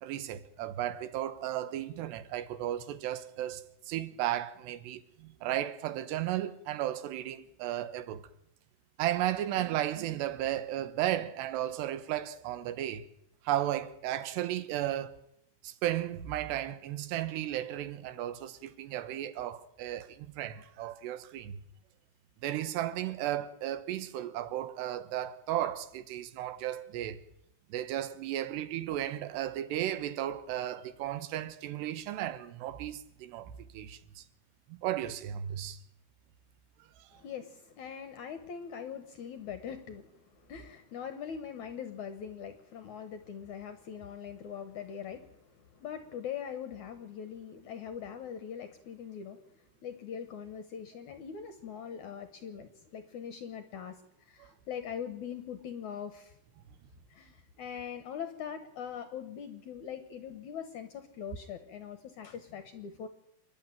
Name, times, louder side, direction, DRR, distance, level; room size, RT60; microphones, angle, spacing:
voice 1, 0.0-8.3 9.0-13.1 13.4-15.2 15.6-21.6 22.4-27.2 27.7-34.2 34.7-35.8 37.1-37.2, right 12 dB, 85° right, 3.2 m, -34 dB
voice 2, 37.1-56.4 57.1-63.1, left 8 dB, 70° left, 1.9 m, -42 dB
27.0 x 11.0 x 9.0 m
omnidirectional pair, 4.8 m